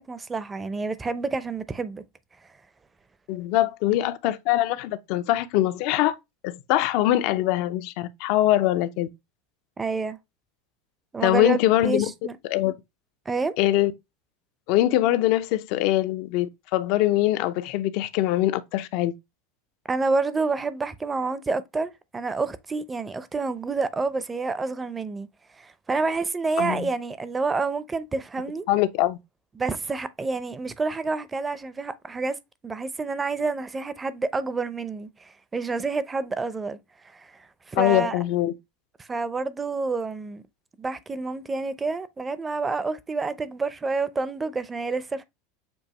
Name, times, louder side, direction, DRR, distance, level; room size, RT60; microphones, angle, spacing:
voice 1, 0.0-2.0 9.8-10.2 11.1-12.4 13.3-13.5 19.9-25.3 25.6-28.6 29.6-32.4 32.6-36.8 37.0-38.2 39.0-40.4 40.8-45.2, right 4 dB, 20° right, 0.6 m, -28 dB
voice 2, 3.3-6.2 6.4-9.1 11.2-12.1 12.4-12.7 13.6-13.9 14.7-19.1 26.6-26.9 28.7-29.2 37.7-38.5, left 15 dB, 60° left, 0.5 m, -23 dB
7.0 x 2.6 x 2.9 m
hypercardioid pair, 105°, 0 cm